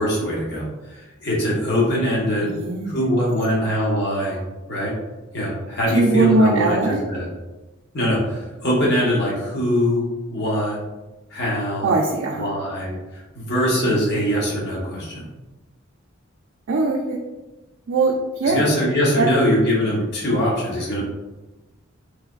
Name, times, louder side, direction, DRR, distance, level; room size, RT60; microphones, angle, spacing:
voice 1, 0.0-2.5 2.8-4.4 4.7-4.9 5.3-7.3 7.9-10.8 11.3-11.9 12.4-15.2 18.4-21.1, equal, 50° left, -4 dB, 1.0 m, -22 dB
voice 2, 2.4-3.0 5.9-7.0 11.8-12.5 16.7-17.2 17.9-18.6 19.2-19.3, right 3 dB, 65° right, -1 dB, 0.4 m, -20 dB
3.3 x 2.9 x 2.4 m, 1.1 s
head